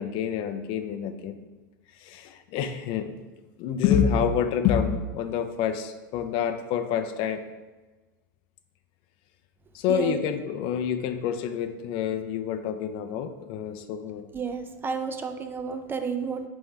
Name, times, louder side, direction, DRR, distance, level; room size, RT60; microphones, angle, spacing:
voice 1, 0.0-1.4 2.0-3.1 3.6-7.5 9.7-14.3, left 8 dB, 50° left, 9 dB, 0.4 m, -27 dB
voice 2, 14.3-16.5, right 5 dB, 20° right, 7 dB, 0.4 m, -31 dB
4.3 x 3.5 x 3.2 m, 1.2 s
hypercardioid pair, 95°, 11 cm